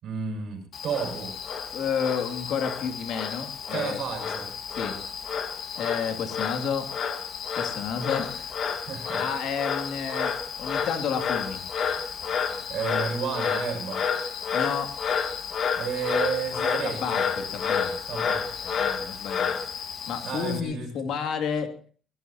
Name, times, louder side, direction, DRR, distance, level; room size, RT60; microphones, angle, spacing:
voice 1, 0.0-1.4 3.7-4.5 8.8-9.3 12.7-14.1 15.8-17.2 18.1-18.6 20.2-20.9, right 6 dB, 60° right, 3 dB, 6.3 m, -32 dB
Frog, 0.7-20.6, left 6 dB, 45° left, 1.9 m, -30 dB
voice 2, 1.7-4.0 4.8-5.0 5.8-6.9 7.6-8.5 9.2-11.6 14.5-15.0 16.8-17.9 18.6-21.7, left 7 dB, 65° left, 6 dB, 2.6 m, -31 dB
22.0 x 20.0 x 2.9 m, 0.42 s
cardioid pair, 155°, 0 cm